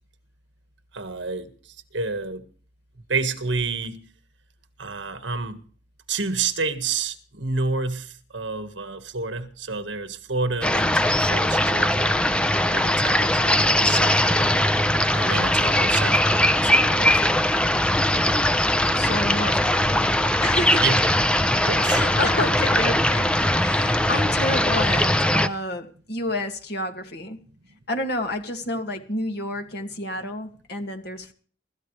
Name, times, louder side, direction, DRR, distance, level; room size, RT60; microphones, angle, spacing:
voice 1, 0.9-2.4 3.1-4.0 4.8-5.6 6.1-12.1 12.6-14.7 15.2-17.2 20.8-21.0 21.6-22.0, right 4 dB, 75° right, 1.7 m, -29 dB
sound 1, 10.6-25.5, left 1 dB, 5° left, 0.7 m, -20 dB
voice 2, 18.9-20.9 21.8-23.3 23.6-27.4 27.9-31.3, left 1 dB, 60° left, 2.4 m, -29 dB
24.0 x 13.5 x 3.3 m
head